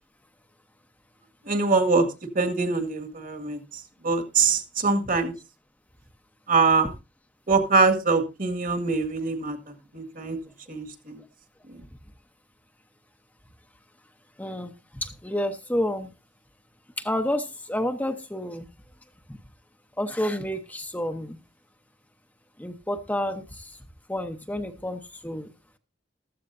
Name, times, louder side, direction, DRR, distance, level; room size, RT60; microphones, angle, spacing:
voice 1, 1.4-2.1 2.4-5.3 6.5-6.9 7.5-10.4 10.7-11.2 11.7-11.8, right 4 dB, 50° right, 1.9 m, -24 dB
voice 2, 14.4-14.7 15.0-16.1 17.0-18.7 19.3-19.4 20.0-21.4 22.6-23.8 24.1-25.5, left 1 dB, 10° left, 0.9 m, -29 dB
14.5 x 14.0 x 2.6 m
head